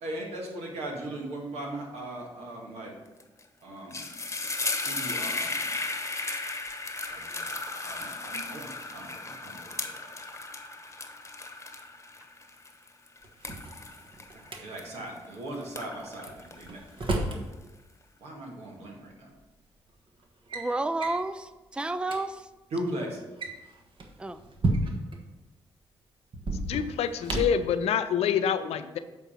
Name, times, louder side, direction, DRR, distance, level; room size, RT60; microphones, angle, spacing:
voice 1, 0.0-3.0 3.6-4.1 4.9-5.8 7.1-10.1 14.3-16.8 18.2-19.3 22.7-23.3, right 1 dB, 80° right, -1 dB, 1.7 m, -38 dB
sound 1, 3.2-3.4 3.7-15.3 15.6-17.5, left 3 dB, 25° left, 1.1 m, -35 dB
Drawer open or close, 13.2-14.6 16.3-17.4 18.7-18.8 19.6-19.9 20.2-20.7 21.0-21.2 21.7-21.8 22.0-22.2 23.2-25.2 26.3-27.7, right 2 dB, 50° right, 1.3 m, -32 dB
voice 2, 20.5-22.5 24.2-24.4, right 2 dB, 10° right, 12 dB, 0.4 m, -31 dB
voice 3, 26.6-29.0, left 8 dB, 75° left, 11 dB, 0.5 m, -27 dB
8.2 x 3.5 x 5.7 m, 1.1 s
supercardioid pair, 50°, 11 cm